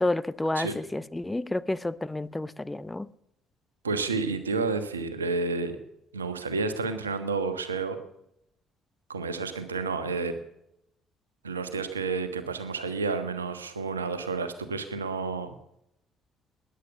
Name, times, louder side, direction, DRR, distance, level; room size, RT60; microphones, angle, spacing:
voice 1, 0.0-3.1, left 2 dB, 15° left, 0.7 m, -30 dB
voice 2, 3.8-5.8 6.1-8.0 9.1-10.3 11.4-15.5, right 4 dB, 85° right, 1.3 m, -30 dB
20.0 x 10.0 x 6.9 m
figure-of-eight pair, 50°, 0 cm